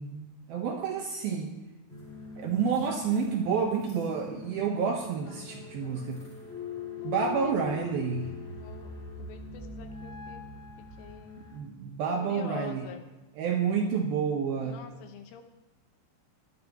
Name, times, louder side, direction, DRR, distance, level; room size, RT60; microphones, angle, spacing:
voice 1, 0.0-1.5 2.4-6.2 7.0-8.3 11.5-12.9 13.3-14.8, right 6 dB, 80° right, 2 dB, 2.1 m, -29 dB
sound 1, 1.9-11.6, left 5 dB, 15° left, 4.1 m, -42 dB
voice 2, 5.4-6.3 7.0-7.1 7.4-7.5 8.5-8.9 9.2-10.4 11.0-11.5 12.2-13.0 13.7-13.9 14.7-15.4, left 7 dB, 75° left, 5 dB, 3.5 m, -47 dB
21.5 x 15.5 x 3.0 m, 1.1 s
omnidirectional pair, 6.0 m